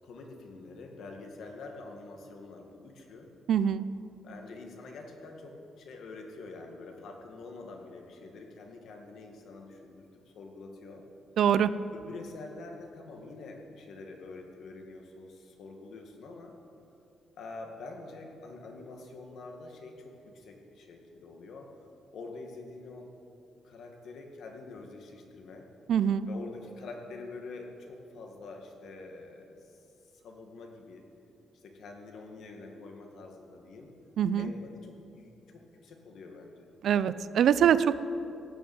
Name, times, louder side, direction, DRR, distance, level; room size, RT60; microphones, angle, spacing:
voice 1, 0.0-3.3 4.2-11.1 11.9-16.6 17.4-21.7 22.1-23.1 23.6-25.7 26.3-29.8 30.2-31.1 31.5-33.9 34.4-36.7, left 3 dB, 65° left, 2 dB, 2.0 m, -46 dB
voice 2, 3.5-3.9 11.4-11.7 25.9-26.3 34.2-34.5 36.8-38.0, right 9 dB, 60° right, 14 dB, 0.5 m, -24 dB
16.0 x 7.1 x 9.3 m, 2.8 s
cardioid pair, 165°, 0 cm